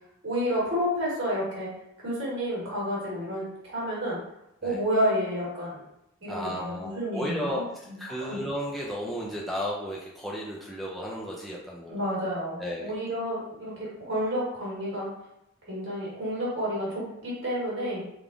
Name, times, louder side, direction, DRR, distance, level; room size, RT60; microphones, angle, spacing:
voice 1, 0.2-1.7 2.0-4.2 4.6-5.8 6.2-8.4 11.9-15.1 15.7-18.0, equal, 60° right, -6 dB, 1.3 m, -30 dB
voice 2, 6.3-12.0 12.6-12.9, equal, ahead, -4 dB, 0.4 m, -34 dB
3.4 x 2.4 x 3.6 m, 0.83 s
head